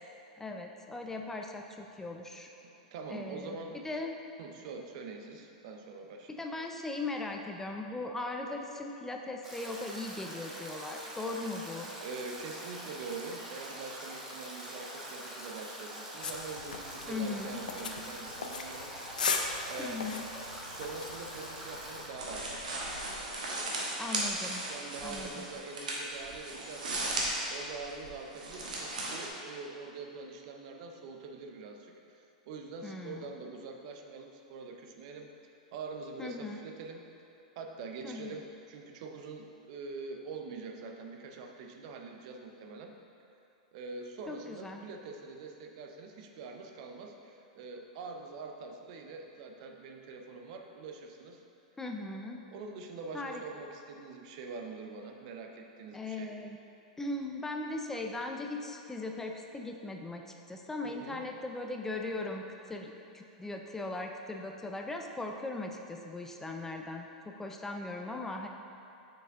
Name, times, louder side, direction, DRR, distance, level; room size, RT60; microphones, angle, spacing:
voice 1, 0.4-2.5 3.1-3.6 3.8-4.2 6.3-11.9 17.1-17.6 19.8-20.2 24.0-24.6 25.0-25.5 32.8-33.3 36.2-36.6 38.0-38.3 44.3-44.8 51.8-52.4 53.1-53.4 55.9-56.6 57.0-68.5, left 2 dB, 10° left, 2 dB, 0.4 m, -39 dB
voice 2, 2.6-3.8 4.4-6.3 12.0-19.4 19.7-20.0 20.6-22.7 24.7-27.0 27.5-35.3 35.7-37.1 37.6-42.9 43.7-51.4 52.5-56.4 60.8-61.2, right 4 dB, 55° right, 3 dB, 0.6 m, -44 dB
Stream / Drip / Trickle dribble, 9.4-22.1, right 1 dB, 15° right, 1.1 m, -44 dB
sound 1, 16.2-23.2, left 5 dB, 90° left, 0.5 m, -39 dB
sound 2, 22.2-29.3, right 2 dB, 80° right, 1.2 m, -36 dB
6.3 x 4.6 x 3.6 m, 2.8 s
hypercardioid pair, 115°, 4 cm